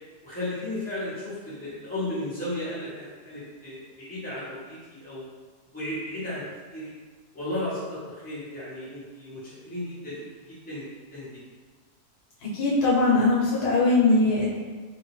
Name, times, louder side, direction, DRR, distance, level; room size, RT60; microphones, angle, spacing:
voice 1, 0.2-5.2 5.7-6.4 6.7-6.9 7.3-11.4, left 1 dB, 5° left, -12 dB, 1.1 m, -34 dB
voice 2, 12.4-14.5, left 2 dB, 80° left, -6 dB, 1.4 m, -21 dB
2.9 x 2.7 x 3.1 m, 1.4 s
omnidirectional pair, 1.7 m